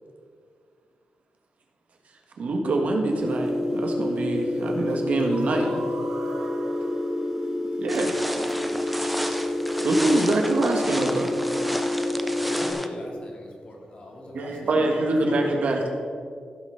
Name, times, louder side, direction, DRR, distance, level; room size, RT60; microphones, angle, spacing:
voice 1, 2.4-5.7 7.8-8.2 8.8-9.4 9.8-11.3 14.7-15.8, right 2 dB, 65° right, 2 dB, 1.7 m, -25 dB
sound 1, 3.1-12.7, left 1 dB, 20° right, 2.0 m, -28 dB
voice 2, 5.2-5.8 8.6-8.9 12.3-15.4, left 1 dB, 45° left, -1 dB, 2.4 m, -39 dB
voice 3, 6.2-7.8 14.1-15.9, right 2 dB, 85° right, -1 dB, 2.4 m, -39 dB
sound 2, 7.9-12.9, equal, ahead, 0.6 m, -32 dB
15.5 x 6.0 x 5.9 m, 2.1 s
wide cardioid pair, 145°, 3 cm